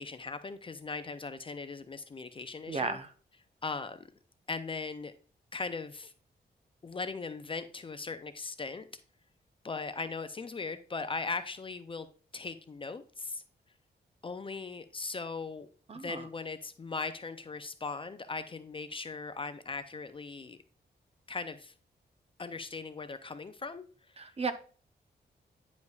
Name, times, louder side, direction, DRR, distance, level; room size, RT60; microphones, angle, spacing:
voice 1, 0.0-3.0 3.6-4.1 4.5-5.1 5.5-6.1 6.8-8.9 9.6-12.1 12.3-13.4 14.2-15.7 15.9-20.6 21.3-21.7 22.4-24.3, left 4 dB, 30° left, 11 dB, 0.4 m, -39 dB
voice 2, 2.7-3.1 15.9-16.2 24.2-24.5, right 4 dB, 35° right, 10 dB, 0.6 m, -34 dB
9.4 x 5.1 x 2.3 m, 0.41 s
wide cardioid pair, 135°, 18 cm